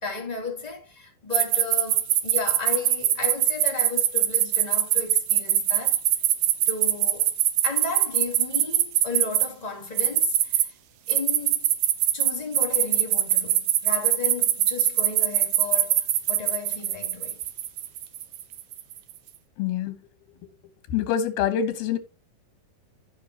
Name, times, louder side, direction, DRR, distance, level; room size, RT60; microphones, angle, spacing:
voice 1, 0.0-6.0 6.7-7.3 7.6-10.7 11.1-11.7 12.1-17.4, left 4 dB, 10° left, 2.6 m, -34 dB
sound 1, 1.3-9.5 10.0-10.6 11.1-18.9, right 12 dB, 75° right, 2.4 m, -22 dB
voice 2, 19.6-20.0 20.9-22.0, left 9 dB, 85° left, 3.2 m, -25 dB
15.0 x 5.6 x 2.9 m
omnidirectional pair, 4.2 m